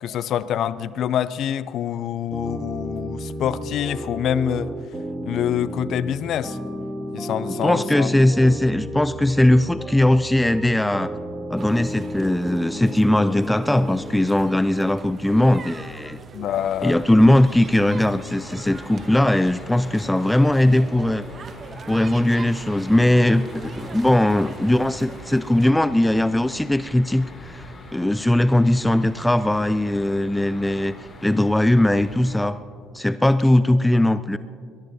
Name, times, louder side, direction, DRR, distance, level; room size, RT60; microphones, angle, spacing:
voice 1, 0.0-4.7 5.2-6.6 7.1-8.1 16.3-17.0, left 10 dB, 60° left, 0.5 m, -26 dB
sound 1, 2.3-14.1, equal, 15° right, 2.0 m, -33 dB
voice 2, 7.6-11.1 11.5-16.2 16.8-21.3 21.9-30.9 31.2-32.6 32.9-34.4, left 1 dB, 10° left, 0.4 m, -19 dB
sound 2, 11.6-25.7, right 5 dB, 45° right, 1.0 m, -41 dB
sound 3, 16.5-32.5, left 1 dB, 40° left, 4.0 m, -43 dB
23.0 x 20.5 x 2.8 m
hypercardioid pair, 55°, 0 cm